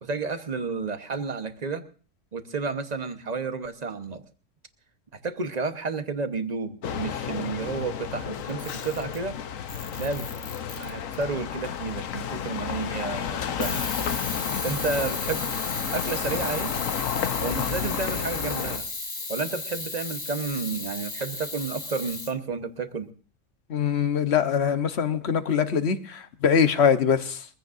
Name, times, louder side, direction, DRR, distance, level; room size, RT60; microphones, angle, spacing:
voice 1, 0.0-1.8 2.3-4.2 5.1-9.4 10.0-10.3 10.8-13.8 14.6-15.6 15.9-16.7 17.4-18.9 19.3-23.1, right 4 dB, 35° right, 9 dB, 1.1 m, -31 dB
sound 1, 6.8-18.8, left 8 dB, 85° left, 1.2 m, -31 dB
Camera, 8.5-9.2 9.7-11.2 13.6-22.3, left 3 dB, 35° left, 1.4 m, -34 dB
voice 2, 23.7-27.5, left 7 dB, 55° left, 10 dB, 1.2 m, -23 dB
23.0 x 15.5 x 2.6 m, 0.40 s
omnidirectional pair, 1.3 m